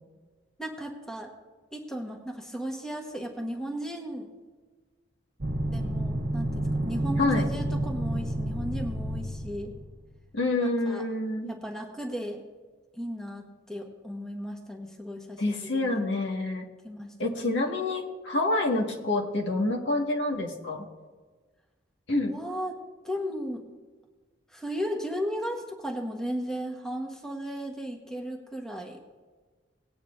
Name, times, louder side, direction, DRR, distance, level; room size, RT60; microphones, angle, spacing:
voice 1, 0.6-1.3 1.7-4.3 5.7-9.7 10.6-11.1 11.5-12.4 12.9-16.0 16.8-17.1 22.3-23.6 24.5-29.0, equal, 5° left, 1 dB, 1.2 m, -35 dB
sound 1, 5.4-9.9, right 1 dB, 50° right, 0.8 m, -30 dB
voice 2, 10.3-11.5 15.4-16.7 17.2-20.9 22.1-22.4, left 2 dB, 75° left, 0 dB, 1.7 m, -27 dB
19.0 x 9.2 x 2.6 m, 1.4 s
head